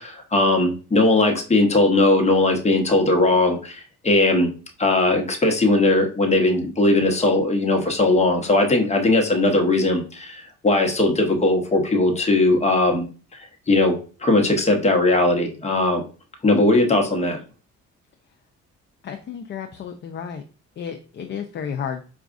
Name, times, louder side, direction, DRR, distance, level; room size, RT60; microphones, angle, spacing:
voice 1, 0.0-4.5 4.8-13.0 13.3-16.0 16.4-17.4, left 2 dB, 20° left, 3 dB, 0.9 m, -19 dB
voice 2, 19.0-20.4 20.8-22.0, left 7 dB, 40° left, 5 dB, 0.4 m, -32 dB
4.7 x 2.4 x 2.4 m, 0.36 s
cardioid pair, 90°, 30 cm